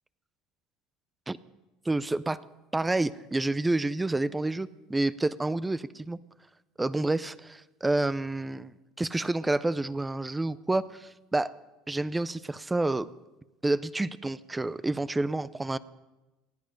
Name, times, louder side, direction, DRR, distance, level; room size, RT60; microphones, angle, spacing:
voice 1, 1.9-2.4 2.7-6.2 6.8-11.5 11.9-13.1 13.6-15.8, right 2 dB, 10° right, 18 dB, 0.4 m, -29 dB
19.0 x 14.0 x 5.2 m, 1.1 s
cardioid pair, 140°, 0 cm